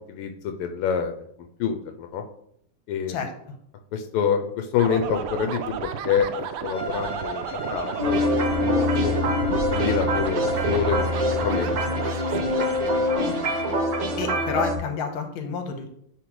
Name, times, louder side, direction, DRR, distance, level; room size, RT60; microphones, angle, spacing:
voice 1, 0.1-2.2 2.9-3.3 3.9-9.1 9.7-11.7, left 7 dB, 85° left, 5 dB, 1.5 m, -27 dB
voice 2, 3.1-3.6 13.2-13.4 14.2-15.9, left 5 dB, 65° left, 5 dB, 1.7 m, -30 dB
sound 1, 4.8-14.3, right 7 dB, 80° right, 1.5 m, -34 dB
Bowed string instrument, 6.6-13.8, right 2 dB, 20° left, 1.2 m, -37 dB
sound 2, 8.0-14.8, left 1 dB, 60° right, 1.8 m, -24 dB
9.7 x 3.9 x 3.1 m, 0.69 s
omnidirectional pair, 2.4 m